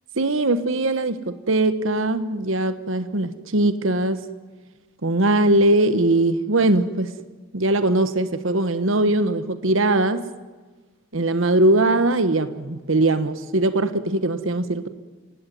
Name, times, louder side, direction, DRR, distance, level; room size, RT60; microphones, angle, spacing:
voice 1, 0.2-4.2 5.0-7.1 7.5-10.3 11.1-14.9, right 2 dB, 75° right, 12 dB, 1.3 m, -21 dB
28.0 x 17.5 x 9.3 m, 1.3 s
head